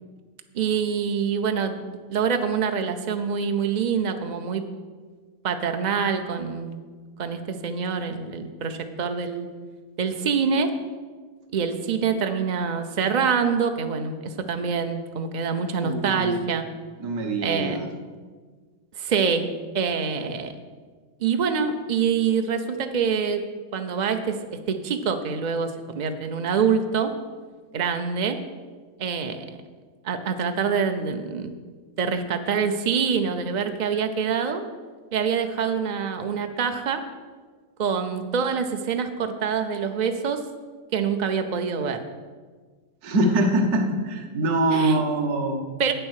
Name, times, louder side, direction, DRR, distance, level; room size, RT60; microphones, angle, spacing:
voice 1, 0.5-1.8 2.1-4.6 5.4-6.8 7.2-9.5 10.0-10.7 11.5-16.6 17.4-17.8 19.0-19.5 19.7-20.5 21.2-23.4 23.7-27.1 27.7-28.4 29.0-29.5 30.0-31.5 32.0-34.7 35.1-37.0 37.8-40.4 40.9-42.0 44.7-45.0 45.8-45.9, right 6 dB, 90° right, 7 dB, 0.4 m, -25 dB
voice 2, 15.8-16.4 17.0-17.9 43.0-45.6, right 1 dB, 65° right, 4 dB, 1.6 m, -23 dB
8.5 x 7.8 x 6.4 m, 1.5 s
omnidirectional pair, 1.7 m